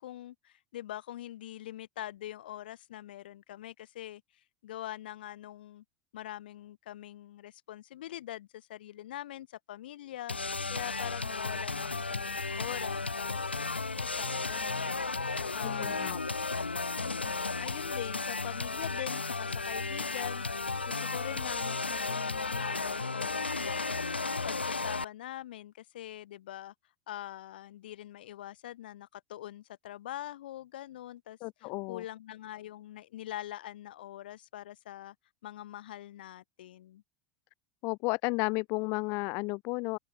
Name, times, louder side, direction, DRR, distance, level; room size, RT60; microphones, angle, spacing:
voice 1, 0.0-4.2 4.6-5.8 6.1-13.7 14.0-16.2 17.0-20.4 20.9-23.9 24.4-26.7 27.1-35.1 35.4-37.0, left 13 dB, 65° left, 2.4 m, -43 dB
sound 1, 10.3-25.0, left 3 dB, 85° left, 0.7 m, -34 dB
voice 2, 15.6-16.2 31.4-32.0 37.8-40.0, left 29 dB, 45° left, 0.5 m, -33 dB
open air
figure-of-eight pair, 80°, 6 cm